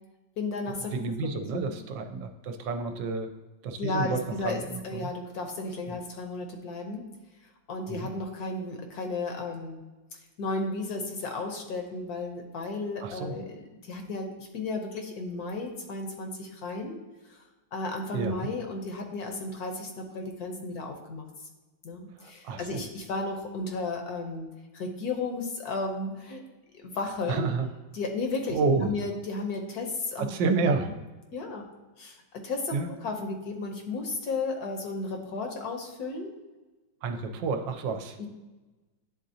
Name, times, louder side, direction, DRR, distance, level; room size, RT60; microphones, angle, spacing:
voice 1, 0.4-1.0 1.5-1.6 3.8-7.0 7.7-9.8 10.1-17.0 17.3-17.4 17.7-21.2 21.8-24.5 24.7-26.4 26.7-27.5 27.9-30.3 30.6-30.7 31.3-31.6 32.0-36.4 38.2-38.3, left 3 dB, 65° left, 3 dB, 1.1 m, -34 dB
voice 2, 0.9-3.3 3.6-5.1 5.9-6.0 7.9-8.1 13.0-13.4 18.1-18.4 22.2-22.8 27.3-27.7 28.5-28.9 30.3-30.9 32.7-32.9 37.0-38.2, right 4 dB, 80° right, 6 dB, 1.3 m, -30 dB
10.0 x 3.8 x 2.7 m, 1.2 s
omnidirectional pair, 2.0 m